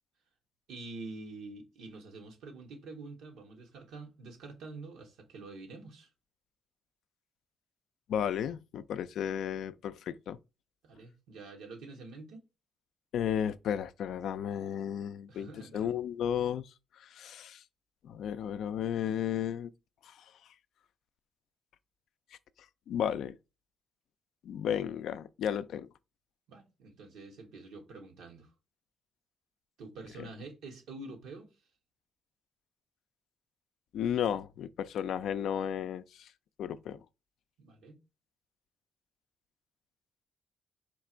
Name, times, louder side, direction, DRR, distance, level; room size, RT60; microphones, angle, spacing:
voice 1, 0.7-6.1 10.8-12.4 15.3-15.9 26.5-28.5 29.8-31.5 37.6-38.0, right 3 dB, 85° right, 1.2 m, -47 dB
voice 2, 8.1-10.4 13.1-16.7 17.0-17.6 18.0-19.7 20.0-20.1 22.9-23.4 24.4-25.9 30.2-30.3 33.9-36.3 36.6-37.0, left 9 dB, 80° left, 0.3 m, -33 dB
4.4 x 2.5 x 4.3 m
cardioid pair, 85°, 0 cm